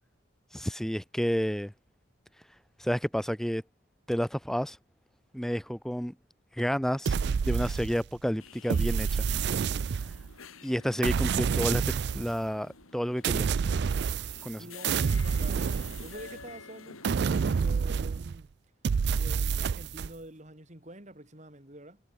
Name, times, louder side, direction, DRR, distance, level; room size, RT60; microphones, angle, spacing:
voice 1, 0.5-1.7 2.8-3.6 4.1-4.8 5.3-6.1 6.5-7.1 7.4-9.3 10.6-11.8 12.1-13.5 14.4-14.6, equal, ahead, 1.3 m, -30 dB
sound 1, 7.1-8.2 8.7-10.3 11.0-12.4 13.2-14.6 14.8-16.4 17.0-18.4 18.8-20.1, right 6 dB, 55° right, 0.3 m, -28 dB
sound 2, 8.4-17.7, left 4 dB, 85° left, 3.3 m, -50 dB
voice 2, 14.5-15.6 16.0-18.5 19.2-22.0, right 1 dB, 35° right, 3.0 m, -47 dB
head